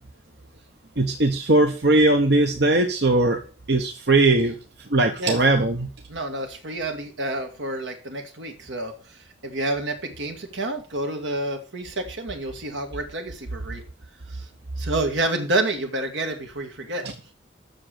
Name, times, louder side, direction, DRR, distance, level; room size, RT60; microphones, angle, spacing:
voice 1, 1.0-3.4 3.7-5.9, right 2 dB, 60° right, 4 dB, 1.0 m, -20 dB
voice 2, 6.1-13.8 14.3-14.5 14.8-17.0, right 2 dB, 80° right, 3 dB, 1.9 m, -29 dB
7.6 x 6.5 x 7.5 m, 0.37 s
head